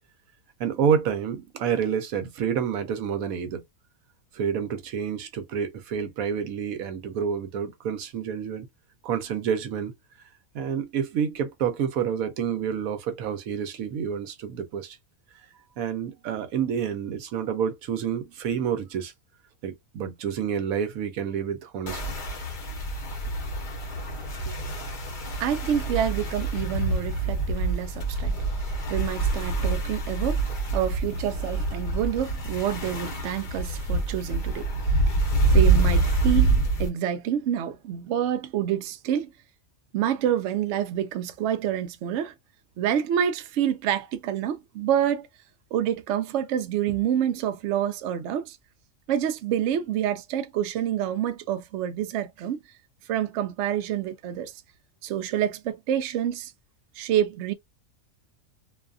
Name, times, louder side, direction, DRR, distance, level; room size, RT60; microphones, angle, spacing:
voice 1, 0.6-3.6 4.3-8.7 9.0-9.9 10.5-15.0 15.8-19.1 19.6-22.2 24.5-24.6, right 7 dB, 85° right, 1.1 m, -28 dB
sound 1, 21.9-36.9, right 3 dB, 40° left, 0.9 m, -26 dB
voice 2, 25.4-28.4 28.9-34.7 35.5-39.3 39.9-42.3 42.8-45.3 45.7-48.6 49.1-52.6 53.1-54.5 55.0-56.5 57.0-57.5, right 10 dB, 65° right, 0.8 m, -27 dB
2.7 x 2.4 x 2.3 m
omnidirectional pair, 1.5 m